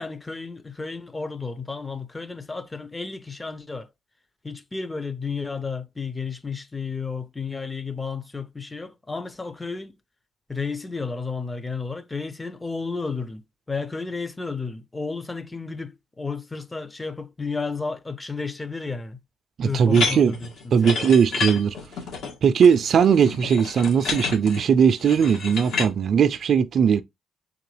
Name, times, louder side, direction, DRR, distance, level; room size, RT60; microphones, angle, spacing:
voice 1, 0.0-3.9 4.4-9.9 10.5-13.4 13.7-19.2 19.6-21.1, left 4 dB, 20° left, 0.6 m, -32 dB
voice 2, 19.6-20.3 20.7-21.7 22.4-27.0, right 7 dB, 60° right, 0.4 m, -19 dB
sound 1, 19.9-25.9, left 4 dB, 75° left, 1.6 m, -30 dB
3.8 x 2.9 x 3.2 m
cardioid pair, 90°, 0 cm